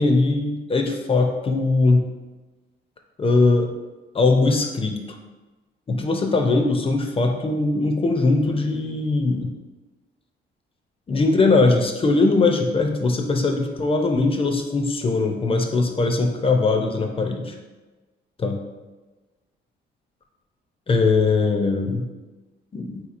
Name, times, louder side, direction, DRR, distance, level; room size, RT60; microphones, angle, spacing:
voice 1, 0.0-2.1 3.2-3.7 4.1-5.0 5.9-9.5 11.1-17.6 18.4-18.6 20.9-22.1 22.7-23.0, left 3 dB, 30° left, 3 dB, 0.4 m, -20 dB
3.5 x 2.9 x 2.5 m, 1.2 s
cardioid pair, 90°, 20 cm